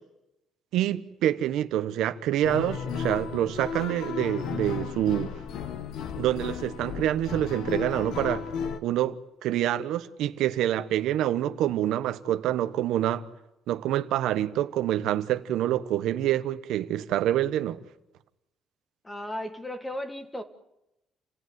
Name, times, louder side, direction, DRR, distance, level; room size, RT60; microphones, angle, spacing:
voice 1, 0.7-5.3 6.2-8.4 8.8-9.2 9.4-13.2 13.7-17.8, right 12 dB, 85° right, 1.2 m, -26 dB
sound 1, 2.4-8.8, left 7 dB, 75° left, 1.3 m, -34 dB
voice 2, 19.0-20.4, left 1 dB, 10° left, 1.9 m, -35 dB
29.0 x 16.5 x 9.6 m
cardioid pair, 140°, 0 cm